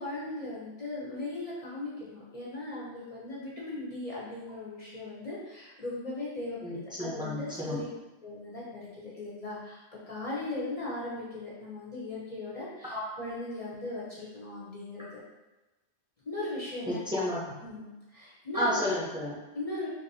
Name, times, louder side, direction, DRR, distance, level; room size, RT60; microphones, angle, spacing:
voice 1, 0.0-7.9 8.2-9.8 10.1-15.1 16.3-17.1 17.6-18.8 19.5-19.9, left 2 dB, 40° left, -7 dB, 0.6 m, -38 dB
voice 2, 6.6-7.8 12.9-13.0 16.9-17.6 18.5-19.4, left 1 dB, 5° right, -7 dB, 0.5 m, -31 dB
2.9 x 2.9 x 2.7 m, 1.1 s
omnidirectional pair, 1.3 m